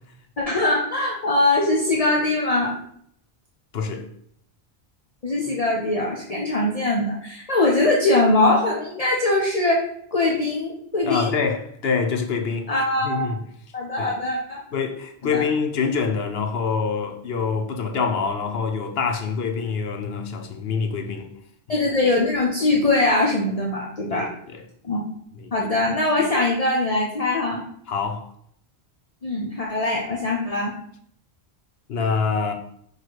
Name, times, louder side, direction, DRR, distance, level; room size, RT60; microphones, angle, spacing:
voice 1, 0.4-2.7 5.2-11.3 12.7-13.3 13.7-14.6 15.2-15.4 21.7-24.3 24.8-25.0 25.5-27.6 29.2-30.7, left 2 dB, 35° left, 0.9 m, -22 dB
voice 2, 3.7-4.1 11.1-12.7 13.0-13.4 14.0-14.1 14.7-21.3 24.1-24.6 25.3-25.5 27.9-28.3 31.9-32.5, left 5 dB, 70° left, 0.9 m, -25 dB
6.2 x 3.3 x 4.5 m
omnidirectional pair, 1.1 m